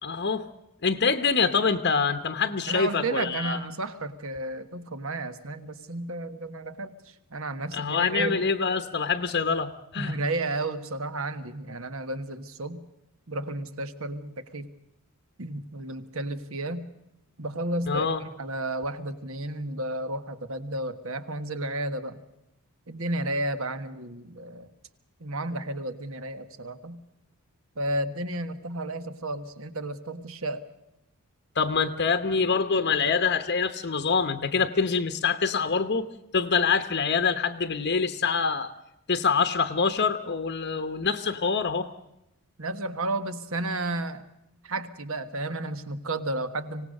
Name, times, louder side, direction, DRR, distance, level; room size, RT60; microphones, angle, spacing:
voice 1, 0.0-0.4 0.8-3.6 7.7-10.2 17.9-18.2 31.6-36.1 36.3-38.7 39.1-41.9, left 5 dB, 50° left, 8 dB, 1.0 m, -25 dB
voice 2, 2.7-8.4 10.0-12.8 13.3-14.7 15.4-16.9 17.4-18.1 18.4-22.2 22.9-24.7 25.2-27.0 27.8-30.7 42.6-44.3 44.6-46.9, right 2 dB, 65° right, 10 dB, 1.5 m, -32 dB
25.5 x 18.0 x 6.5 m, 0.86 s
head